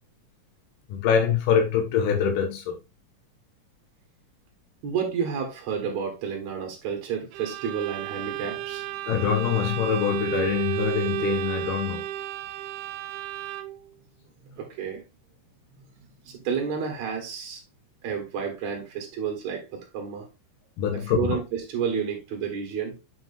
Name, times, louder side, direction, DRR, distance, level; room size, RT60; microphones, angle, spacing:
voice 1, 0.9-2.8 9.1-12.1 20.8-21.2, left 7 dB, 80° left, 2.6 m, -24 dB
voice 2, 4.8-9.1 14.4-15.0 16.2-17.6 18.0-20.3 20.9-23.0, right 7 dB, 65° right, 2.7 m, -31 dB
Bowed string instrument, 7.3-13.9, right 13 dB, 80° right, 2.0 m, -32 dB
7.9 x 5.8 x 2.6 m
omnidirectional pair, 3.7 m